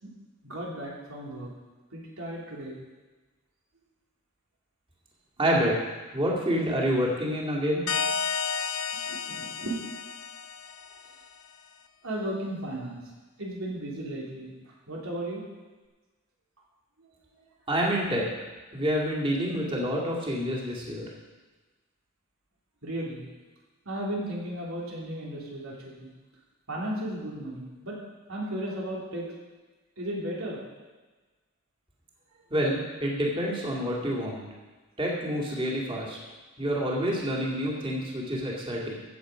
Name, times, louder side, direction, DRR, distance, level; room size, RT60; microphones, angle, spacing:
voice 1, 0.4-1.5 1.9-2.8 9.1-9.9 12.0-13.1 13.4-14.5 14.9-15.4 17.0-17.1 17.4-17.5 22.8-23.3 23.8-26.1 26.7-28.0 28.3-29.3 30.0-30.6, right 1 dB, 85° right, -3 dB, 3.3 m, -35 dB
voice 2, 5.4-5.8 6.1-7.9 17.7-18.3 18.7-21.1 32.5-34.4 35.0-36.2 36.6-39.0, equal, 25° right, -3 dB, 2.5 m, -28 dB
sound 1, 7.9-11.3, left 6 dB, 85° left, 0.7 m, -32 dB
15.5 x 7.4 x 5.1 m, 1.3 s
head